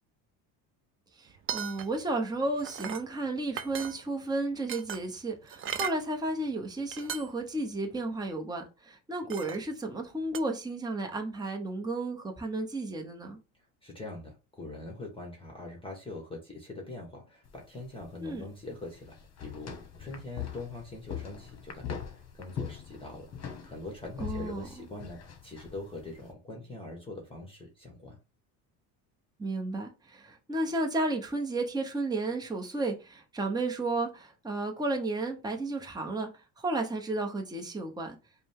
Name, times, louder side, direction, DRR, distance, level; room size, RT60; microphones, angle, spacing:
voice 1, 1.2-13.4 18.2-18.4 24.2-24.6 29.4-36.3 36.6-38.2, right 2 dB, 10° right, 1.0 m, -33 dB
sound 1, 1.3-2.1 2.4-3.1 3.5-4.2 4.7-6.0 6.6-6.7 6.9-7.5 7.9-8.0 9.3-9.7 10.3-10.4, right 8 dB, 30° right, 0.4 m, -37 dB
voice 2, 13.8-19.7 20.0-23.3 23.6-28.2, left 2 dB, 10° left, 1.4 m, -43 dB
sound 2, 17.4-26.3, left 8 dB, 35° left, 1.3 m, -42 dB
4.9 x 2.3 x 3.6 m
supercardioid pair, 100°, 46 cm